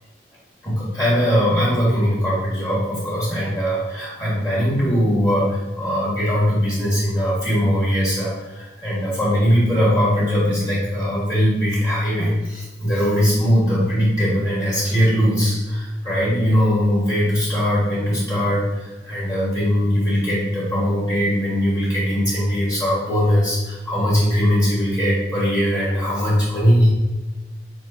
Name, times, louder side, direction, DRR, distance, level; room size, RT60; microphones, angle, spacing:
voice 1, 0.6-26.9, equal, 20° left, -7 dB, 1.4 m, -20 dB
7.2 x 2.7 x 2.7 m, 1.1 s
head